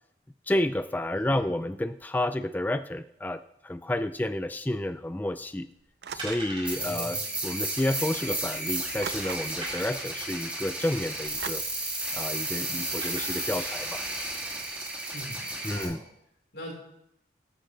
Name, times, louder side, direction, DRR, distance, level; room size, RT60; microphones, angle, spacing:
voice 1, 0.5-5.7 6.1-11.6 12.1-14.1 15.6-16.0, left 1 dB, 10° left, 11 dB, 0.3 m, -30 dB
voice 2, 1.1-1.4 6.8-7.2 15.1-16.0 16.5-16.7, equal, 85° left, -1 dB, 4.3 m, -42 dB
sound 1, 5.5-5.7 6.2-6.9 7.3-7.4 7.7-7.8 8.4-8.8 9.6-10.3 11.6-12.0 13.0-13.8 14.4-14.5, right 2 dB, 30° right, 4.5 m, -41 dB
sound 2, 6.0-6.6 7.6-7.7 9.0-9.7 11.4-11.5, right 7 dB, 70° right, 0.5 m, -39 dB
sound 3, 6.6-15.8, right 2 dB, 10° right, 2.6 m, -33 dB
14.0 x 11.5 x 3.3 m, 0.78 s
head